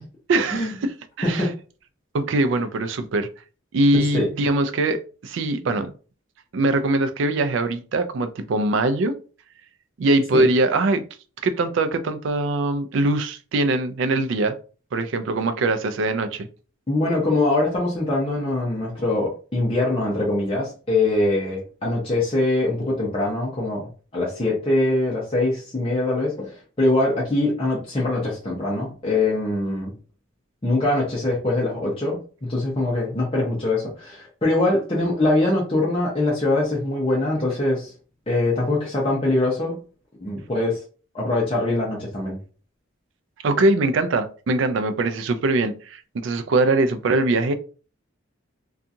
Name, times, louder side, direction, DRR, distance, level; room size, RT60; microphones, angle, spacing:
voice 1, 0.3-0.9 1.2-1.5 2.1-3.3 3.7-5.9 6.5-9.2 10.0-11.0 11.4-14.6 14.9-16.5 43.4-47.5, right 2 dB, 65° right, 0.4 m, -22 dB
voice 2, 3.9-4.3 10.3-10.4 16.9-29.9 30.6-37.9 38.3-39.8 40.2-40.8 41.1-42.4, left 2 dB, 25° left, 0.6 m, -23 dB
2.7 x 2.3 x 2.5 m
head